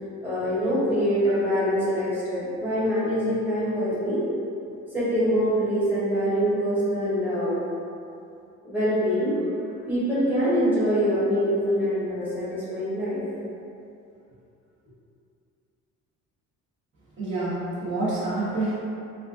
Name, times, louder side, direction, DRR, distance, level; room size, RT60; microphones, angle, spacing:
voice 1, 0.2-4.2 4.9-7.6 8.6-9.4 9.9-13.2, equal, 5° right, -12 dB, 1.2 m, -24 dB
voice 2, 17.2-18.7, right 2 dB, 45° right, -14 dB, 1.2 m, -27 dB
4.2 x 2.3 x 2.5 m, 2.6 s
cardioid pair, 145°, 29 cm